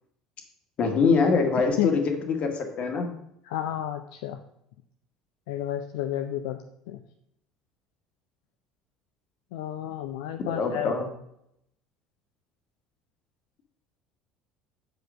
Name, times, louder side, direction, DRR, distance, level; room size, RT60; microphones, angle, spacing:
voice 1, 0.8-3.1 10.6-11.1, left 4 dB, 45° left, 4 dB, 1.8 m, -24 dB
voice 2, 3.4-4.4 5.5-7.0 9.5-10.9, left 12 dB, 65° left, 7 dB, 0.5 m, -31 dB
7.6 x 5.0 x 6.2 m, 0.76 s
figure-of-eight pair, 60°, 3 cm